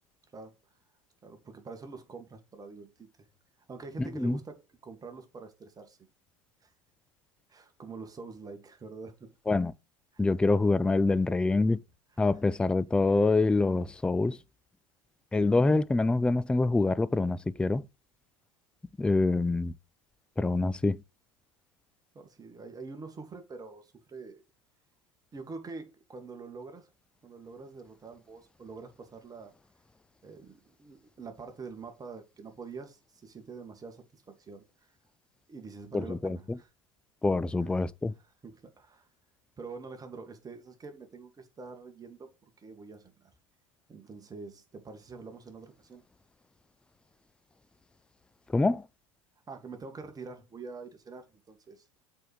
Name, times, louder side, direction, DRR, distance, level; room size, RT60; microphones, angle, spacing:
voice 1, 1.2-3.1 3.7-6.0 6.6-6.7 7.5-9.3 10.1-10.5 22.1-24.4 25.3-26.9 27.2-29.5 30.2-34.9 35.5-36.7 37.6-37.7 38.4-39.1 39.6-42.3 42.6-43.3 43.9-46.0 49.5-51.8, right 4 dB, 20° right, 2.0 m, -45 dB
voice 2, 4.0-4.4 9.5-9.7 10.2-11.8 12.2-14.4 15.3-17.8 19.0-19.7 20.4-21.0 35.9-36.6 37.2-38.1 48.5-48.8, left 3 dB, 5° left, 0.4 m, -26 dB
7.7 x 4.6 x 4.9 m
hypercardioid pair, 85°, 17 cm